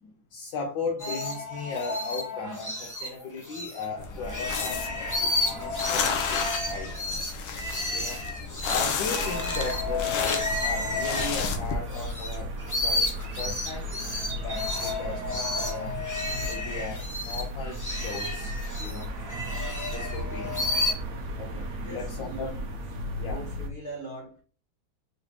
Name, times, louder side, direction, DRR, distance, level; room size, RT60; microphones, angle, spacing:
voice 1, 0.0-7.1 7.9-8.2 8.6-12.5 12.8-13.1 13.4-14.0 14.4-15.9 16.5-19.1 19.9-20.8 21.4-22.6 23.2-23.4, left 4 dB, 75° left, 1.4 m, -37 dB
sound 1, 1.0-3.8 4.2-12.3 12.6-20.9, left 2 dB, 20° left, 0.5 m, -32 dB
sound 2, 4.0-11.7, left 5 dB, 90° left, 1.6 m, -32 dB
sound 3, 9.2-23.7, equal, 65° right, 0.7 m, -35 dB
voice 2, 21.8-22.7 23.3-24.4, right 2 dB, 40° left, 0.9 m, -41 dB
5.0 x 3.2 x 3.0 m
omnidirectional pair, 2.2 m